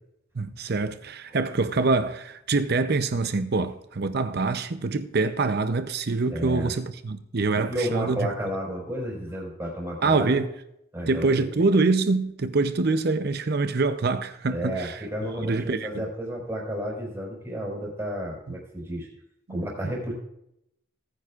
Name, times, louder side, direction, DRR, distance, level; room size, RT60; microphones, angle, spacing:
voice 1, 0.3-8.2 10.0-10.5 11.1-15.0 15.4-16.0 19.5-19.6 19.8-19.9, right 3 dB, 50° right, 0.6 m, -25 dB
voice 2, 6.3-6.7 7.7-10.4 10.9-11.5 14.5-19.1 19.5-20.1, equal, 10° right, 4.9 m, -32 dB
19.5 x 9.4 x 2.5 m
head